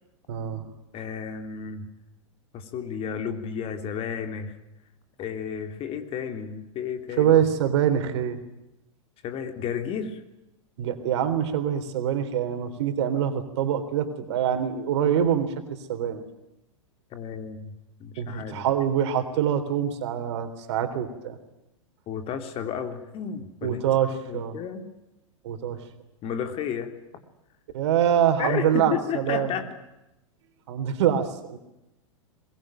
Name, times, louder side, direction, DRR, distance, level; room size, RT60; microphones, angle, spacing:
voice 1, 0.3-0.7 7.2-8.4 10.8-15.5 15.9-16.2 18.2-21.4 23.6-24.6 25.4-25.8 27.7-29.6 30.7-31.6, right 9 dB, 55° right, 9 dB, 3.7 m, -25 dB
voice 2, 0.9-1.8 2.5-4.6 5.2-7.3 9.2-10.2 17.1-17.7 18.0-18.7 22.1-23.8 24.3-24.8 26.2-26.9 28.4-29.7, left 7 dB, 35° left, 7 dB, 3.4 m, -32 dB
23.0 x 22.0 x 9.2 m, 0.91 s
figure-of-eight pair, 100°, 17 cm